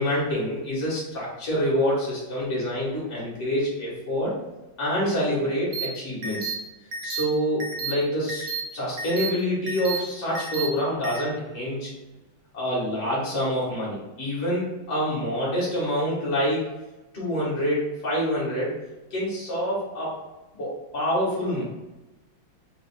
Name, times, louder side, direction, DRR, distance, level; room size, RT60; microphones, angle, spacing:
voice 1, 0.0-4.3 4.8-6.5 7.0-11.9 12.5-16.7 17.1-18.8 19.1-20.1 20.5-21.6, equal, 35° left, -6 dB, 1.8 m, -26 dB
sound 1, 5.7-5.9 6.2-6.5 6.9-7.2 7.6-7.9 8.3-8.6 9.0-9.3 9.7-10.0 10.3-10.7 11.0-11.2, right 5 dB, 65° right, 1.1 m, -31 dB
4.4 x 4.0 x 2.3 m, 1.1 s
omnidirectional pair, 2.2 m